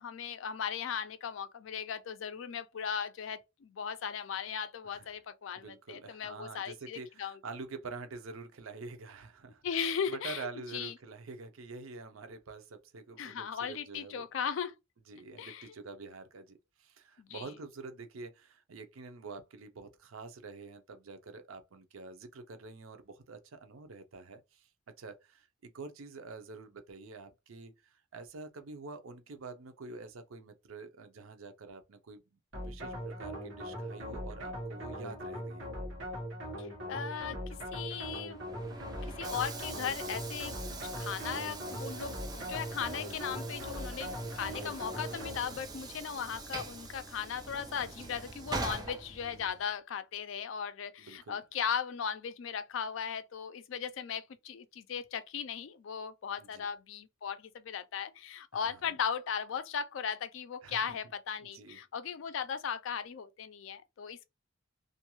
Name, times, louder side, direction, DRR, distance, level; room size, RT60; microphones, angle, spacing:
voice 1, 0.0-7.4 9.6-10.9 13.2-14.7 15.4-15.7 17.2-17.4 36.6-38.4 39.0-64.3, left 7 dB, 65° left, 0.4 m, -37 dB
voice 2, 5.6-14.2 15.1-24.7 25.0-35.7 48.1-48.3 51.0-51.4 56.4-56.6 58.5-59.0 60.6-61.0 61.5-61.8, right 4 dB, 80° right, 0.6 m, -47 dB
sound 1, 32.5-45.7, equal, 60° right, 1.1 m, -40 dB
Train / Sliding door, 38.3-49.7, right 3 dB, 20° right, 0.5 m, -43 dB
2.5 x 2.3 x 2.9 m
head